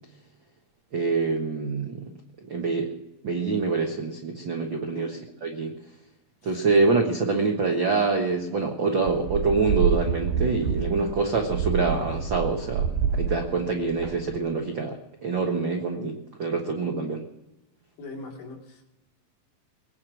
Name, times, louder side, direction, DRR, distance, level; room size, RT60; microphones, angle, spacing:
voice 1, 0.9-2.1 2.5-2.9 3.2-5.7 6.4-15.0 15.2-17.2, right 4 dB, 65° right, 3 dB, 1.2 m, -25 dB
sound 1, 9.1-14.5, right 6 dB, 85° right, 3.7 m, -28 dB
voice 2, 18.0-18.8, left 2 dB, 70° left, -1 dB, 4.7 m, -40 dB
21.0 x 9.7 x 6.2 m, 0.97 s
omnidirectional pair, 4.4 m